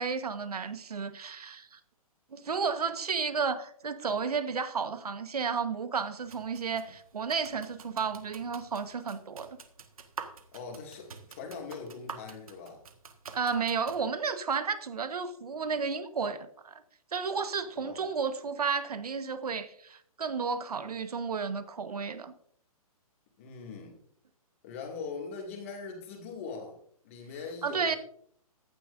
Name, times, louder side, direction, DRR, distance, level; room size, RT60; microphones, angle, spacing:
voice 1, 0.0-1.8 2.3-9.5 13.3-16.8 17.1-22.3 27.6-28.0, right 5 dB, 85° right, 1.4 m, -32 dB
sound 1, 6.2-14.0, right 6 dB, 65° right, 1.7 m, -48 dB
voice 2, 10.5-12.8 17.8-18.0 23.4-24.0 24.6-26.8 27.0-28.0, left 5 dB, 20° left, 2.3 m, -41 dB
15.5 x 12.0 x 2.6 m
hypercardioid pair, 180°, 19 cm